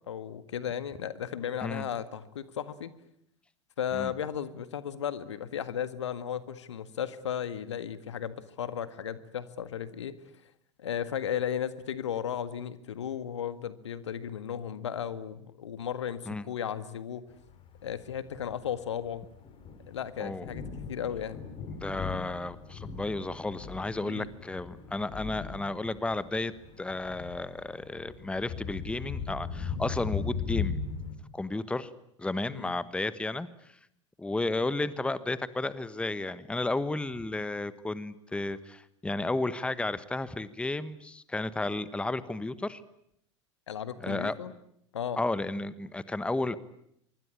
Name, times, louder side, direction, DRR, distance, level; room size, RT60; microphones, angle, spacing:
voice 1, 0.1-2.9 3.8-10.2 10.8-17.3 17.8-19.2 19.9-21.5 24.0-24.3 32.5-32.7 43.7-44.5 44.9-45.2, left 9 dB, 70° left, 14 dB, 1.8 m, -35 dB
Thunder, 17.5-31.1, left 6 dB, 35° left, 5.5 m, -38 dB
voice 2, 21.7-26.5 26.8-30.8 31.3-31.9 32.2-33.5 34.2-42.8 44.0-44.3 45.2-46.6, left 2 dB, 5° left, 16 dB, 1.3 m, -33 dB
25.0 x 23.5 x 9.9 m, 0.74 s
figure-of-eight pair, 80°, 16 cm